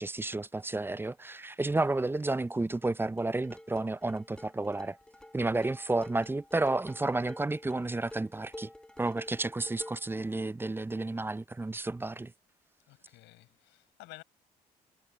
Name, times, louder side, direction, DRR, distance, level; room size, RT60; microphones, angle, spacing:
voice 1, 0.0-5.0 5.3-8.7 9.0-12.3, right 2 dB, 10° right, 0.5 m, -31 dB
voice 2, 1.4-1.7 12.9-14.2, left 19 dB, 70° left, 6.6 m, -53 dB
sound 1, 3.2-10.1, left 1 dB, 5° left, 1.0 m, -49 dB
hypercardioid pair, 50°, 19 cm